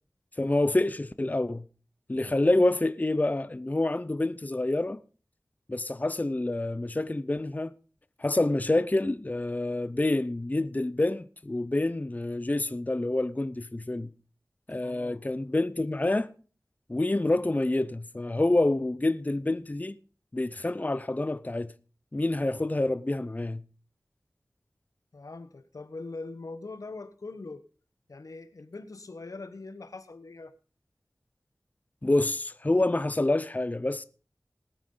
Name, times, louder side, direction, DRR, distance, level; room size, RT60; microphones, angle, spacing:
voice 1, 0.4-1.6 2.1-5.0 5.7-7.7 8.2-14.1 14.7-16.3 16.9-20.0 20.3-21.7 22.1-23.6 32.0-34.0, left 2 dB, 30° left, 0.7 m, -27 dB
voice 2, 14.8-15.2 25.1-27.6 28.1-30.5, left 3 dB, 75° left, 1.2 m, -42 dB
20.0 x 9.1 x 3.9 m
wide cardioid pair, 60°, 6 cm